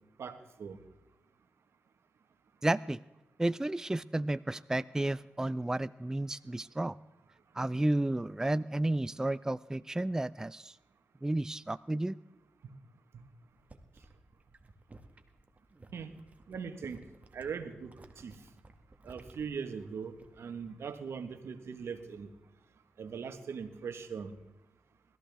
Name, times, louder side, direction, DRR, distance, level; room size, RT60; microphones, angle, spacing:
voice 1, 0.2-0.8 12.6-12.7 13.1-13.2 15.9-16.1 16.5-18.5 19.0-22.3 23.0-24.3, right 6 dB, 75° right, 8 dB, 1.4 m, -41 dB
voice 2, 2.6-3.0 3.4-7.0 7.5-10.8 11.2-12.2, right 1 dB, 15° right, 16 dB, 0.4 m, -32 dB
sound 1, 13.4-20.6 20.9-21.3, right 2 dB, 35° right, 1.6 m, -57 dB
20.5 x 14.0 x 3.5 m, 1.0 s
cardioid pair, 55°, 4 cm